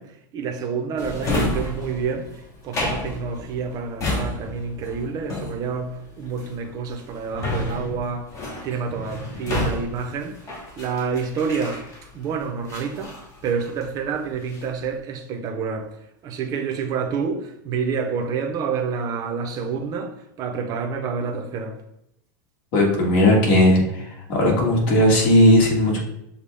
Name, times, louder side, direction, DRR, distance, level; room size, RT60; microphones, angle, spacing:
voice 1, 0.0-8.3 8.6-10.4 10.8-11.9 12.1-16.0 16.2-21.8, right 5 dB, 35° right, 0.7 m, -28 dB
Drawer open or close, 1.0-12.2 12.7-14.0 14.3-14.8, left 2 dB, 25° left, 1.1 m, -31 dB
voice 2, 22.7-24.0 24.3-26.0, left 1 dB, 50° left, 1.7 m, -17 dB
6.8 x 2.3 x 3.4 m
supercardioid pair, 140°, 11 cm